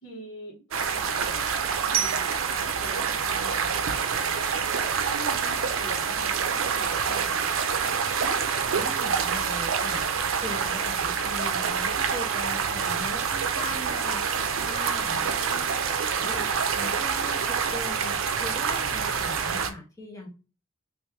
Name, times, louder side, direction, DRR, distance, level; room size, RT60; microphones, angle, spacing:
voice 1, 0.0-4.7 5.1-7.6 15.0-15.9, equal, 65° left, -9 dB, 1.6 m, -44 dB
sound 1, 0.7-19.7, right 6 dB, 90° right, 0.5 m, -27 dB
Glockenspiel, 1.9-4.8, right 9 dB, 25° right, 0.4 m, -35 dB
voice 2, 8.7-20.3, left 1 dB, 15° left, -2 dB, 1.1 m, -40 dB
3.0 x 3.0 x 3.4 m, 0.32 s
head